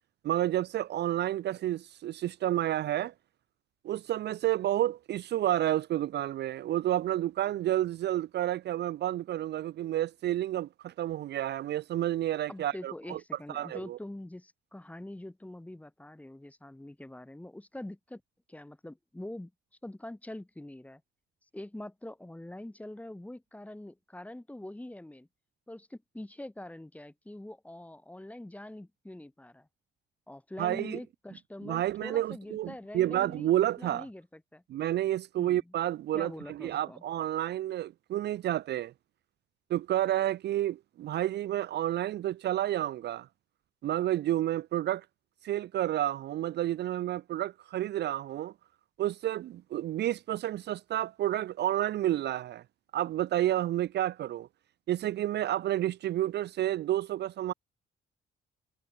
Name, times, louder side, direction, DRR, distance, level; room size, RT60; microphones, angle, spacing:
voice 1, 0.2-3.1 3.8-13.2 13.5-14.0 30.6-31.0 31.6-34.1 34.7-38.9 39.7-43.3 43.8-45.0 45.4-48.5 49.0-52.6 52.9-54.5 54.9-57.5, right 13 dB, 60° right, 0.4 m, -30 dB
voice 2, 12.5-18.2 18.5-19.5 19.8-21.0 21.5-25.3 25.7-29.7 30.3-34.6 35.4-35.7 36.1-37.0, left 1 dB, 5° left, 1.2 m, -44 dB
cardioid pair, 90°, 20 cm